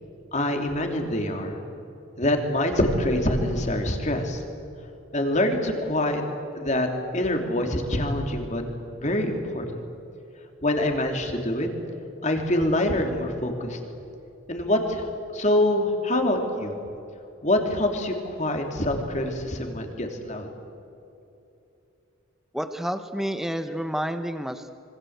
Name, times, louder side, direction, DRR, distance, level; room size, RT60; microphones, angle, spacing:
voice 1, 0.3-1.6 2.2-4.4 5.1-6.2 6.5-8.6 8.9-9.8 10.6-11.7 12.2-13.8 14.5-15.1 15.3-16.8 17.4-20.5, left 1 dB, 35° left, 3 dB, 3.1 m, -25 dB
voice 2, 22.5-24.7, equal, ahead, 8 dB, 0.8 m, -29 dB
26.0 x 24.5 x 8.1 m, 2.8 s
head